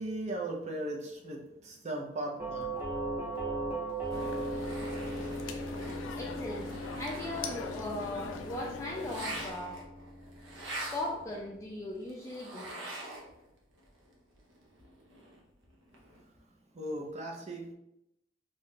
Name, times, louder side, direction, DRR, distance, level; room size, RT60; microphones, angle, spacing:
voice 1, 0.0-2.7 16.7-17.7, right 1 dB, 35° right, 0 dB, 0.6 m, -37 dB
Doorbell, 2.4-11.2, right 2 dB, 10° right, 0.8 m, -38 dB
sound 1, 3.9-13.5 13.8-16.2, right 1 dB, 70° right, 0.7 m, -46 dB
sound 2, 4.1-9.5, left 4 dB, 85° left, 0.4 m, -42 dB
voice 2, 6.1-9.8 10.9-12.9, left 1 dB, 15° left, -2 dB, 0.3 m, -38 dB
2.7 x 2.4 x 3.6 m, 0.83 s
head